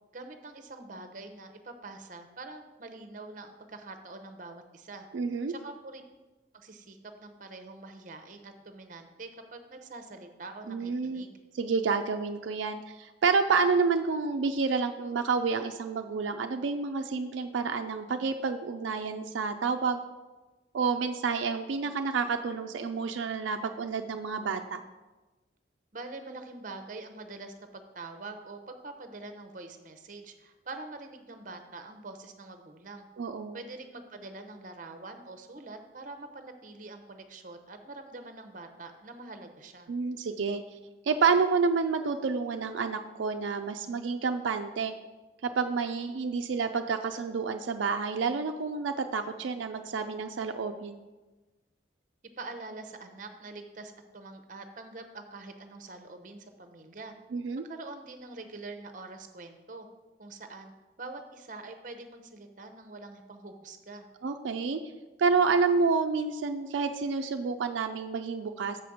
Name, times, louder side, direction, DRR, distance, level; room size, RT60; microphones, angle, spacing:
voice 1, 0.1-5.1 5.5-6.0 6.5-11.4 25.9-33.1 33.5-39.9 52.4-57.1 57.6-59.9 60.2-60.7 61.0-64.1, right 3 dB, 45° right, 7 dB, 0.7 m, -45 dB
voice 2, 5.1-5.5 10.7-11.3 11.5-20.0 20.7-24.8 33.2-33.6 39.9-40.6 41.0-44.9 45.4-51.0 57.3-57.6 64.2-64.8 65.2-68.8, right 5 dB, 80° right, 6 dB, 0.4 m, -29 dB
6.7 x 5.0 x 7.0 m, 1.2 s
head